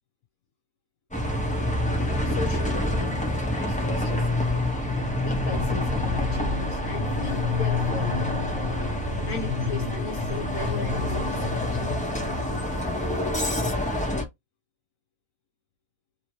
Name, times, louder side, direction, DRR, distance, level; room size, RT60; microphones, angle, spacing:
Bus, 1.1-14.2, left 1 dB, 5° left, 0.8 m, -28 dB
voice 1, 2.2-4.7 5.2-8.7 9.3-12.3, left 5 dB, 65° left, 1.1 m, -37 dB
sound 1, 4.3-13.0, left 4 dB, 45° right, 0.9 m, -31 dB
3.0 x 2.9 x 2.8 m
omnidirectional pair, 1.5 m